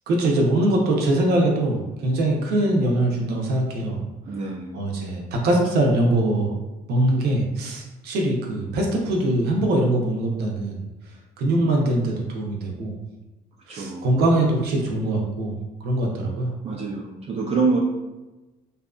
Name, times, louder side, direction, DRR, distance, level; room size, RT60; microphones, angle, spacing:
voice 1, 0.1-4.0 4.4-6.5 6.9-10.8 11.4-12.9 13.7-15.5 15.8-16.5, right 1 dB, 75° right, 0 dB, 0.7 m, -22 dB
voice 2, 4.3-4.8 11.5-11.7 13.7-14.2 16.6-17.8, right 4 dB, 40° right, -2 dB, 0.4 m, -26 dB
2.7 x 2.5 x 2.3 m, 1.1 s
cardioid pair, 110°, 17 cm